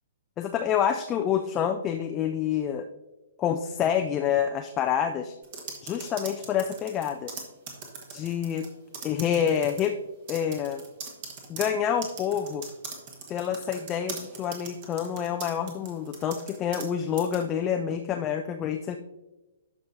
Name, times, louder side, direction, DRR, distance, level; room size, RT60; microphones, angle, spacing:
voice 1, 0.4-2.9 3.4-5.3 5.8-7.3 8.1-8.7 9.0-10.0 10.3-10.8 11.5-12.7 13.3-19.0, left 8 dB, 20° left, 6 dB, 0.4 m, -27 dB
sound 1, 5.4-8.7 8.9-9.9 10.3-16.9 17.2-17.4, right 5 dB, 35° right, 1.4 m, -40 dB
12.0 x 5.4 x 2.7 m, 1.1 s
figure-of-eight pair, 120°, 0 cm